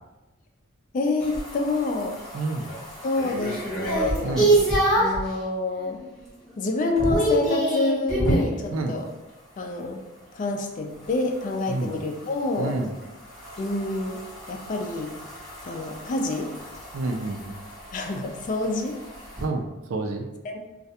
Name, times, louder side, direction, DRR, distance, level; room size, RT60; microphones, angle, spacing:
voice 1, 0.9-2.2 3.0-4.5 5.0-6.0 6.6-9.1 9.6-10.0 10.3-12.8 13.6-14.2 14.5-15.1 15.6-16.5 17.9-19.0 20.4-20.6, left 2 dB, 40° left, 3 dB, 0.3 m, -27 dB
sound 1, 1.2-5.3 5.8-6.2 6.5-8.6 11.0-19.4, right 1 dB, 5° left, 0.8 m, -28 dB
voice 2, 2.3-2.7 4.2-4.5 8.7-8.9 11.7-11.9 12.6-12.9 16.9-17.6 19.4-19.6 19.9-20.3, right 2 dB, 80° right, 4 dB, 0.4 m, -28 dB
2.4 x 2.1 x 2.7 m, 1.0 s
head